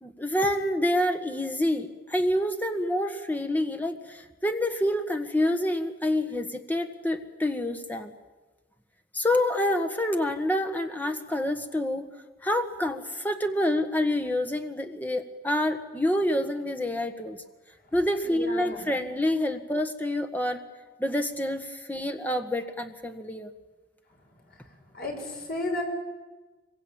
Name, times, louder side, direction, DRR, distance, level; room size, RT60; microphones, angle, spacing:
voice 1, 0.0-8.1 9.1-12.0 12.4-17.4 17.9-20.6 21.0-23.5, left 1 dB, 10° left, 6 dB, 1.7 m, -27 dB
voice 2, 18.2-18.8 24.9-25.8, left 1 dB, 55° left, 2 dB, 6.9 m, -32 dB
25.0 x 23.0 x 9.0 m, 1.2 s
head